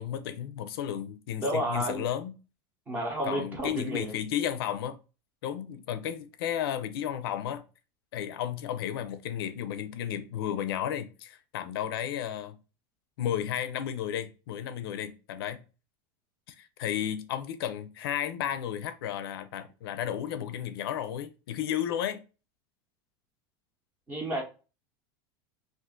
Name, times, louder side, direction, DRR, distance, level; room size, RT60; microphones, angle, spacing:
voice 1, 0.0-2.3 3.2-5.0 5.4-7.6 8.1-12.6 13.2-15.6 16.5-22.2, left 10 dB, 90° left, 0.4 m, -33 dB
voice 2, 1.4-2.0 2.9-4.2 24.1-24.4, right 1 dB, 15° right, 0.6 m, -31 dB
2.5 x 2.4 x 3.6 m
supercardioid pair, 180°, 12 cm